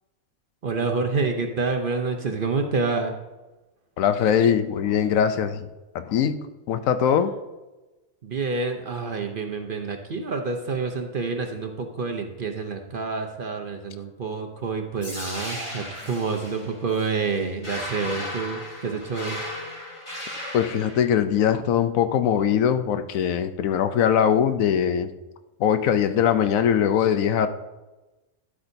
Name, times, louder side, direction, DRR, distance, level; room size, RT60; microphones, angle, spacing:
voice 1, 0.6-3.2 8.2-19.4, right 4 dB, 50° right, 4 dB, 0.7 m, -28 dB
voice 2, 4.0-5.7 5.9-7.3 20.5-25.1 25.6-27.5, left 8 dB, 80° left, 10 dB, 1.0 m, -21 dB
sound 1, 15.0-21.0, left 1 dB, 45° left, 3.3 m, -36 dB
11.0 x 8.2 x 2.7 m, 1.1 s
omnidirectional pair, 1.4 m